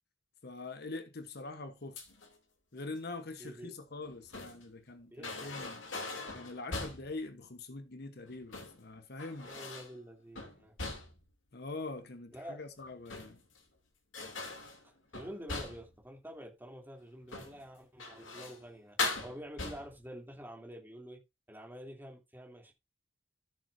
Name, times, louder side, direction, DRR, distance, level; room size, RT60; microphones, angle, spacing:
voice 1, 0.4-2.0 2.7-5.8 6.3-9.5 11.5-13.4, left 3 dB, 55° left, 1.0 m, -43 dB
sound 1, 2.0-2.4 3.9-4.7 5.2-7.2 8.3-8.8 9.2-10.0 10.4-11.3 12.9-13.6 14.1-16.0 17.2-17.6 18.0-18.6 19.0-20.1, left 3 dB, 70° left, 2.7 m, -40 dB
voice 2, 3.4-3.7 5.1-5.5 9.4-10.7 12.3-12.6 14.8-21.2 21.5-22.7, equal, 10° right, 2.9 m, -48 dB
14.0 x 7.1 x 2.6 m
head